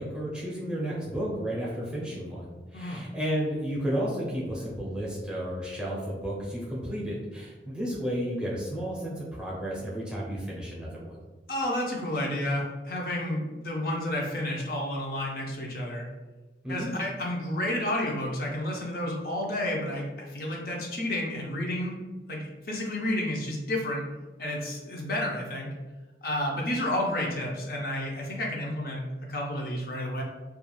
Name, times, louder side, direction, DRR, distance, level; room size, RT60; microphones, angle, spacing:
voice 1, 0.0-11.2 16.6-16.9, equal, 5° right, -5 dB, 0.5 m, -32 dB
voice 2, 11.5-16.1 16.7-22.0 22.3-24.0 24.4-25.7 26.2-30.2, left 1 dB, 55° left, -1 dB, 0.5 m, -31 dB
2.3 x 2.3 x 3.0 m, 1.2 s
head